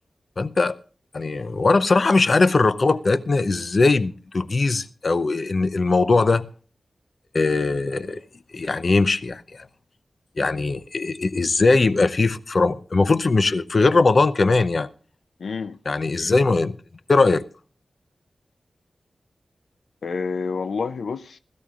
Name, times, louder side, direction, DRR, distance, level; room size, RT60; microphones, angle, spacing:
voice 1, 0.4-0.8 1.1-6.5 7.3-8.2 8.5-9.7 10.4-14.9 15.9-16.8 17.1-17.4, left 3 dB, 50° left, 0.7 m, -20 dB
voice 2, 15.4-15.8 20.0-21.4, left 5 dB, 90° left, 0.5 m, -28 dB
20.0 x 14.0 x 2.4 m
wide cardioid pair, 115°, 0 cm